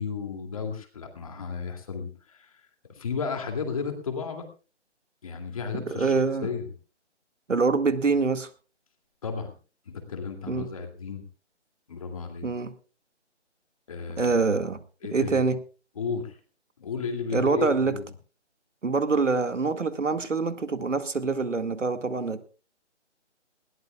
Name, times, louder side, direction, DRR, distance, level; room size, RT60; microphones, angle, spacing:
voice 1, 0.0-2.5 3.0-4.4 5.2-6.1 6.4-6.7 9.2-9.5 9.9-11.2 11.9-12.5 13.9-14.3 15.0-15.4 16.0-16.4 16.8-18.0, left 5 dB, 30° left, 4 dB, 2.6 m, -33 dB
voice 2, 5.7-6.5 7.5-8.5 10.5-10.7 12.4-12.7 14.2-14.8 15.1-15.6 17.3-18.0 18.8-22.4, right 4 dB, 90° right, 9 dB, 2.0 m, -25 dB
20.5 x 17.5 x 2.4 m, 0.36 s
hypercardioid pair, 170°, 36 cm